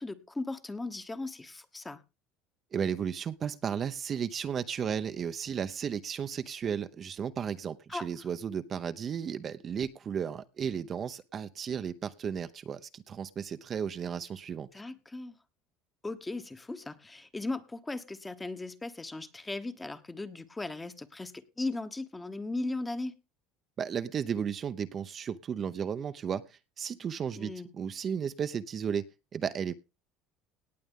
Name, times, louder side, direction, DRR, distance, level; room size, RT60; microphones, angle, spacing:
voice 1, 0.0-2.0 7.9-8.1 14.7-15.3 16.0-23.2 27.4-27.7, left 2 dB, 15° left, 11 dB, 1.2 m, -37 dB
voice 2, 2.7-14.7 23.8-29.1 29.3-29.7, right 7 dB, 35° right, 11 dB, 0.7 m, -34 dB
18.0 x 7.9 x 3.7 m, 0.28 s
supercardioid pair, 115°, 0 cm